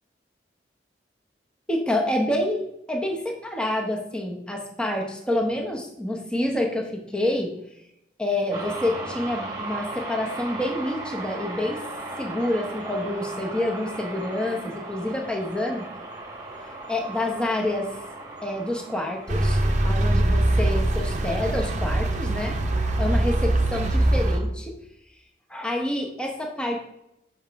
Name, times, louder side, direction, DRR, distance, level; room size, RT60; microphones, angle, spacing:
voice 1, 1.7-7.5 8.2-11.8 12.2-15.9 16.9-17.9 18.4-19.6 19.8-22.6 23.0-24.8 25.5-26.8, left 1 dB, 5° left, 1 dB, 0.9 m, -27 dB
sound 1, 8.5-24.5, right 2 dB, 25° right, 1.3 m, -38 dB
sound 2, 19.3-24.4, right 1 dB, 45° right, 0.7 m, -22 dB
7.1 x 5.7 x 3.5 m, 0.80 s
head